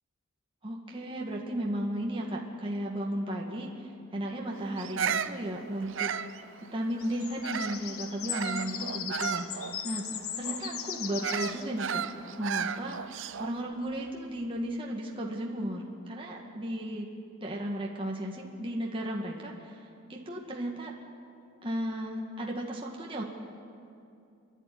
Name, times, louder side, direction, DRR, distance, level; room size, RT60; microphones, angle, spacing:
voice 1, 0.6-3.7 4.1-6.1 6.6-10.1 10.4-12.0 12.4-13.0 13.4-17.1 17.4-19.8 20.1-20.9 21.6-23.2, right 1 dB, 25° right, -2 dB, 1.8 m, -34 dB
Bird vocalization bird call bird song, 4.8-7.9 8.3-13.6, right 7 dB, 60° right, 0.6 m, -35 dB
sound 1, 6.9-11.7, left 9 dB, 85° left, 1.2 m, -38 dB
28.5 x 11.0 x 9.9 m, 2.6 s
head